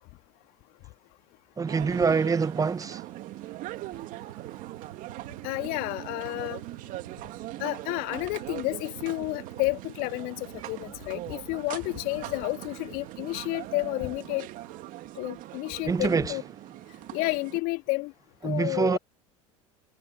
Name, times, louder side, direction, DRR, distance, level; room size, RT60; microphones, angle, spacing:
voice 1, 1.6-3.0 15.9-16.4 18.4-19.0, right 5 dB, 20° right, 1.3 m, -25 dB
sound 1, 1.7-17.6, right 16 dB, 50° right, 2.5 m, -41 dB
sound 2, 2.1-14.9, right 11 dB, 75° right, 3.8 m, -49 dB
voice 2, 5.4-6.6 7.6-14.5 15.2-16.4 17.1-18.1 18.4-19.0, left 24 dB, 55° left, 2.4 m, -31 dB
figure-of-eight pair, 70°, 18 cm